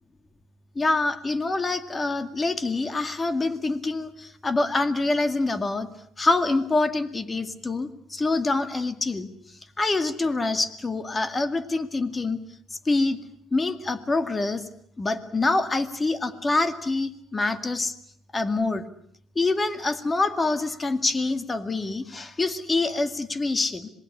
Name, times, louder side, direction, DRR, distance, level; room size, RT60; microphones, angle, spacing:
voice 1, 0.8-5.9 6.2-9.3 9.8-12.4 12.9-13.2 13.5-14.6 15.0-17.9 18.3-18.8 19.4-23.9, left 3 dB, 25° left, 10 dB, 2.2 m, -25 dB
26.5 x 20.0 x 8.6 m, 0.69 s
cardioid pair, 90°, 0 cm